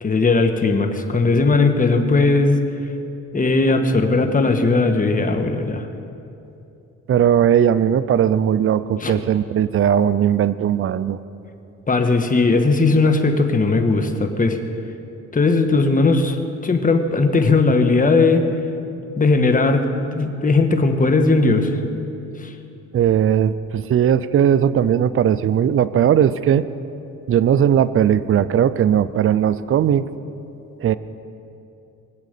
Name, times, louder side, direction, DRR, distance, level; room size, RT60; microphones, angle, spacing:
voice 1, 0.0-2.6 3.3-5.9 9.0-9.2 11.9-14.6 15.3-18.5 19.1-19.9 20.1-21.7 22.4-22.5, left 3 dB, 25° left, 5 dB, 1.5 m, -18 dB
voice 2, 7.1-11.2 22.9-26.7 27.3-30.1 30.8-30.9, right 9 dB, 45° right, 14 dB, 0.6 m, -18 dB
23.0 x 8.3 x 6.8 m, 2.7 s
cardioid pair, 90°, 30 cm